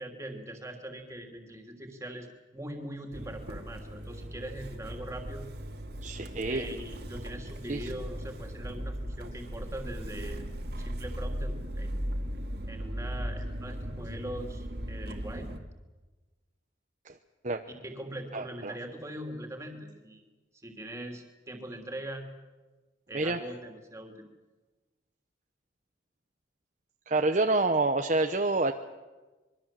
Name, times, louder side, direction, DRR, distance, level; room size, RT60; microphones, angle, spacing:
voice 1, 0.0-2.3 2.5-5.4 6.4-10.5 10.8-12.0 12.7-15.5 17.7-20.2 20.6-22.3 23.1-24.3, right 1 dB, 15° right, 4 dB, 3.1 m, -41 dB
Motor vehicle (road) / Engine starting, 3.1-15.6, equal, 55° right, 2.1 m, -37 dB
voice 2, 6.0-6.6 7.7-7.9 17.0-17.1 17.4-17.6 18.3-18.7 23.1-23.4 27.1-28.7, right 2 dB, 40° right, 5 dB, 1.0 m, -27 dB
25.0 x 23.0 x 7.6 m, 1.2 s
head